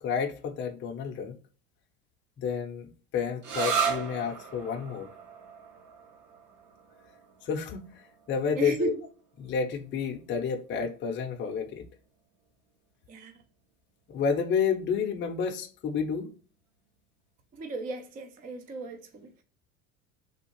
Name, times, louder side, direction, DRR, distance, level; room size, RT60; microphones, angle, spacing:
voice 1, 0.0-1.4 2.4-5.1 7.4-7.9 8.3-8.9 9.4-11.8 14.1-16.3, left 6 dB, 25° left, 0.6 m, -30 dB
sound 1, 3.4-10.8, right 6 dB, 45° right, 1.0 m, -36 dB
voice 2, 8.5-9.0 13.1-13.3 17.5-19.4, right 3 dB, 20° right, 0.4 m, -35 dB
3.5 x 2.4 x 3.0 m
supercardioid pair, 105°, 42 cm